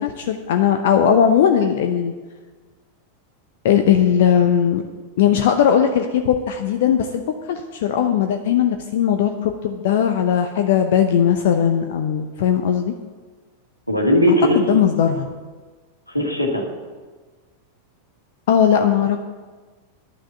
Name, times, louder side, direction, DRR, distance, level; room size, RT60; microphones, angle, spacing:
voice 1, 0.0-2.1 3.6-4.8 5.2-12.9 14.5-15.3 18.5-19.2, left 8 dB, 55° left, 6 dB, 0.7 m, -18 dB
voice 2, 13.9-14.6 16.1-16.6, equal, 90° left, 0 dB, 1.9 m, -18 dB
10.5 x 6.3 x 8.1 m, 1.4 s
figure-of-eight pair, 90°, 0 cm